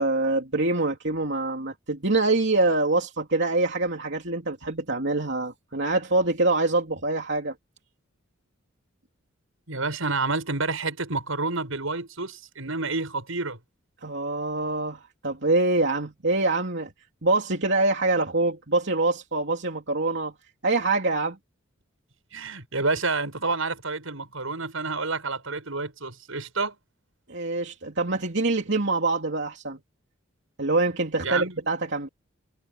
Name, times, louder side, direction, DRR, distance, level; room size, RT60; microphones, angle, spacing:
voice 1, 0.0-7.5 14.0-16.9 17.2-20.3 20.6-21.4 27.3-29.8 30.6-32.1, right 2 dB, 60° right, 3.2 m, -25 dB
voice 2, 9.7-13.6 22.3-26.8 31.2-31.6, right 3 dB, 85° right, 6.9 m, -29 dB
head